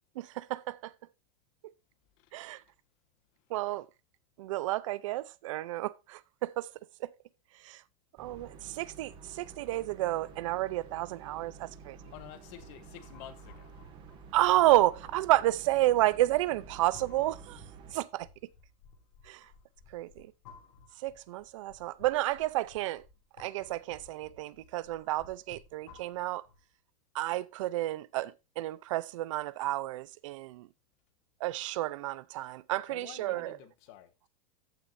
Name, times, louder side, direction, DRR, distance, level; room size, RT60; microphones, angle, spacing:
voice 1, 0.2-0.9 2.3-2.6 3.5-3.9 4.4-6.7 7.0-7.1 7.6-7.8 8.2-12.0 14.3-17.6 17.9-18.3 19.2-19.5 19.9-20.3 21.0-23.0 23.4-26.4 27.1-30.7 31.4-33.6, right 16 dB, 55° right, 0.6 m, -31 dB
voice 2, 2.2-2.6 12.1-13.7 32.9-34.3, left 12 dB, 40° left, 1.2 m, -50 dB
sound 1, 8.2-17.9, right 5 dB, 25° right, 1.5 m, -51 dB
sound 2, 12.0-26.7, left 4 dB, 60° left, 6.3 m, -58 dB
14.5 x 6.2 x 2.6 m
supercardioid pair, 175°, 20 cm